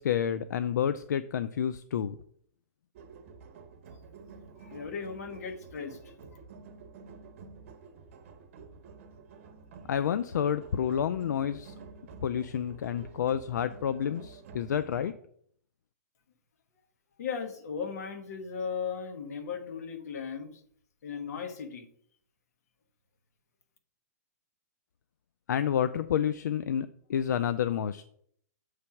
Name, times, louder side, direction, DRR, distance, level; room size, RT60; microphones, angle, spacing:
voice 1, 0.0-2.2 9.9-11.7 12.2-15.1 25.5-28.2, left 9 dB, 85° left, 12 dB, 0.4 m, -29 dB
sound 1, 2.9-15.1, right 5 dB, 45° right, 0.8 m, -50 dB
voice 2, 4.6-6.2 17.2-20.5 21.0-21.9, left 6 dB, 65° left, 7 dB, 1.2 m, -37 dB
6.9 x 3.3 x 5.8 m, 0.65 s
hypercardioid pair, 160°, 9 cm